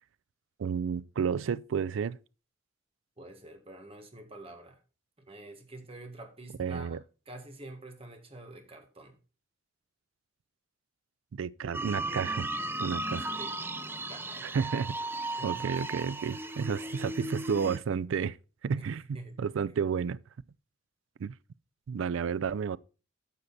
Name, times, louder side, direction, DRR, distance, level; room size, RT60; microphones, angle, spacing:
voice 1, 0.6-2.2 6.6-7.0 11.3-12.5 12.8-13.3 14.4-15.0 15.4-18.4 18.6-20.2 21.2-21.4 21.9-22.8, right 6 dB, 75° right, 0.4 m, -31 dB
voice 2, 3.2-4.8 5.2-7.0 7.3-9.1 13.4-13.5 14.1-14.6 15.4-15.6 16.8-17.0 18.8-19.3, right 2 dB, 30° right, 1.7 m, -47 dB
sound 1, 11.7-17.8, right 2 dB, 10° right, 0.6 m, -36 dB
9.5 x 6.6 x 4.1 m
head